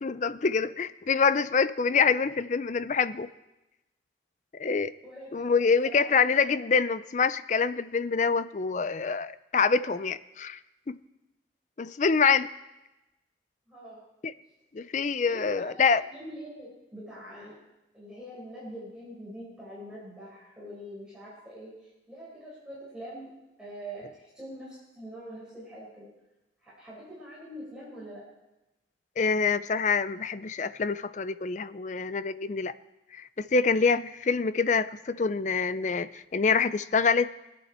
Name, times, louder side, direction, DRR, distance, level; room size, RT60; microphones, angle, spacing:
voice 1, 0.0-3.3 4.6-4.9 5.3-10.6 10.9-11.0 11.8-12.5 14.2-14.3 14.7-16.0 29.2-32.7 33.1-37.3, left 5 dB, 40° left, 14 dB, 0.4 m, -26 dB
voice 2, 5.0-5.5 5.8-6.1 6.4-6.6 13.7-14.0 15.2-15.7 16.1-17.6 17.9-21.7 22.1-23.3 23.6-26.1 26.6-28.2, right 1 dB, 5° right, -9 dB, 4.9 m, -44 dB
24.0 x 8.5 x 4.3 m, 0.99 s
head